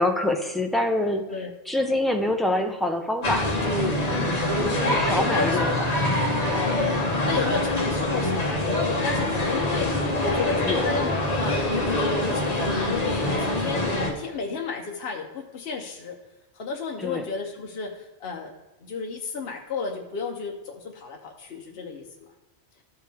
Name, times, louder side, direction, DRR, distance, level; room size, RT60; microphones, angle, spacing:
voice 1, 0.0-1.2 1.7-5.7 10.7-10.9 17.0-17.3, left 1 dB, ahead, 3 dB, 0.5 m, -26 dB
sound 1, 3.2-14.1, left 1 dB, 35° left, 1.3 m, -24 dB
voice 2, 5.1-5.8 6.5-16.1 16.5-18.5 18.8-22.1, left 4 dB, 60° left, 1 dB, 1.0 m, -33 dB
13.5 x 4.7 x 3.5 m, 1.1 s
omnidirectional pair, 1.2 m